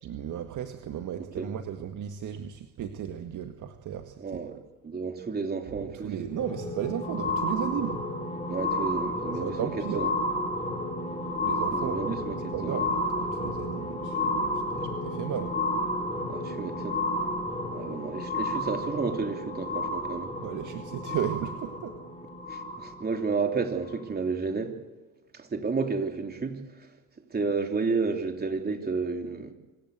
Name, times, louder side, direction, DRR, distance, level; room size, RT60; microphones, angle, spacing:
voice 1, 0.0-4.4 6.0-8.0 9.4-10.0 11.4-12.2 12.5-15.5 20.4-22.0, right 9 dB, 40° right, 6 dB, 1.8 m, -35 dB
voice 2, 1.1-1.5 4.2-4.5 4.8-6.1 8.5-10.1 11.7-12.9 16.3-17.0 17.7-20.3 22.5-24.8 25.3-26.9 27.3-29.5, right 4 dB, 20° right, 4 dB, 3.3 m, -31 dB
sound 1, 6.3-23.2 23.9-24.0, left 1 dB, 15° left, 5.3 m, -31 dB
26.0 x 14.0 x 8.2 m, 1.2 s
hypercardioid pair, 75°, 45 cm